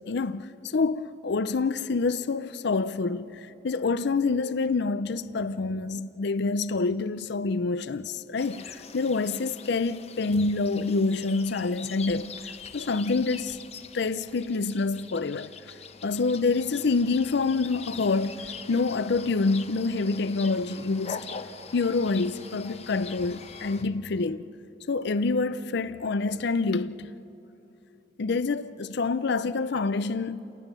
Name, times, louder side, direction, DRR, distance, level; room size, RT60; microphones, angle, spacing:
voice 1, 0.1-12.4 12.7-13.6 13.9-15.5 16.0-21.2 21.7-24.5 24.9-27.1 28.2-30.4, left 3 dB, 60° left, 0.5 m, -27 dB
sound 1, 8.4-23.8, left 5 dB, 35° left, 0.9 m, -43 dB
29.0 x 19.0 x 6.8 m
head